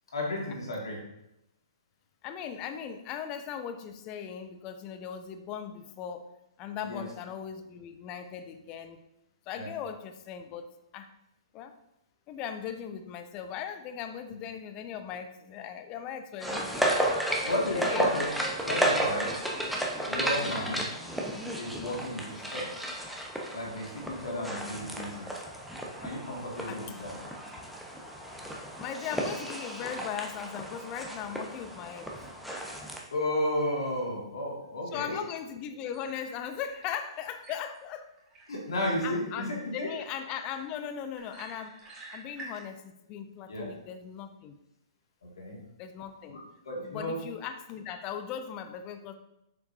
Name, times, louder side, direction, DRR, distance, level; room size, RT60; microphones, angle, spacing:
voice 1, 0.1-1.0 6.8-7.1 9.5-9.7 17.0-17.1 17.4-18.3 18.7-19.5 20.1-20.8 21.6-23.0 23.5-25.4 26.0-27.1 33.1-35.2 38.5-39.9 43.5-43.7 45.2-45.6 46.3-46.4 46.6-47.2, left 1 dB, 60° left, -2 dB, 2.0 m, -33 dB
voice 2, 2.2-6.3 6.6-9.0 9.5-10.7 10.9-11.1 11.5-11.7 12.3-16.9 17.7-18.1 20.4-20.7 26.7-26.8 28.8-32.1 34.9-38.1 39.0-41.8 42.1-44.6 45.8-46.4 46.8-49.1, left 8 dB, 30° left, 8 dB, 0.6 m, -38 dB
sound 1, 16.4-33.0, right 1 dB, ahead, 0.9 m, -33 dB
sound 2, 35.8-42.6, right 2 dB, 20° right, 2.0 m, -51 dB
6.8 x 6.6 x 2.6 m, 0.85 s
figure-of-eight pair, 120°, 3 cm